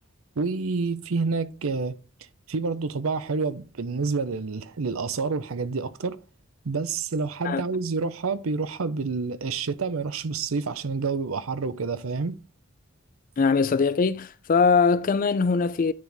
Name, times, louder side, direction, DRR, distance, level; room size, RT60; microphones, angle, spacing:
voice 1, 0.4-2.0 2.5-6.2 6.6-12.3, right 4 dB, 85° right, 0.6 m, -28 dB
voice 2, 13.4-15.9, left 5 dB, 40° left, 0.4 m, -21 dB
9.5 x 3.5 x 4.0 m
head